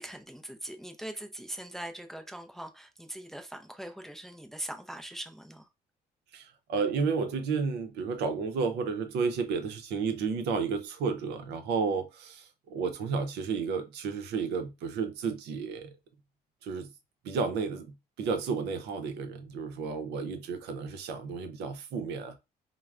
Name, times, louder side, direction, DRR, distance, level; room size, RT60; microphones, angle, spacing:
voice 1, 0.0-5.7, right 1 dB, ahead, 0.4 m, -41 dB
voice 2, 6.3-16.0 16.6-16.9 17.2-22.4, right 5 dB, 80° right, 0.6 m, -32 dB
3.3 x 2.1 x 2.4 m
cardioid pair, 110°, 17 cm